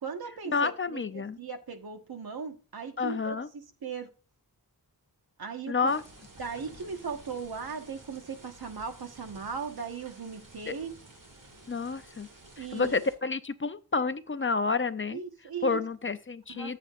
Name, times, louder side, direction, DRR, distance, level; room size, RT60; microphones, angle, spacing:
voice 1, 0.0-4.1 5.4-5.9 6.4-10.9 12.6-12.9 15.1-15.8 16.5-16.7, right 6 dB, 75° right, 1.5 m, -38 dB
voice 2, 0.5-1.4 3.0-3.5 5.7-6.0 10.7-10.8 11.7-12.3 12.6-15.2 15.6-16.8, left 4 dB, 35° left, 0.6 m, -29 dB
sound 1, 5.9-13.1, right 2 dB, 55° right, 2.6 m, -52 dB
12.5 x 7.7 x 2.5 m
wide cardioid pair, 110°, 37 cm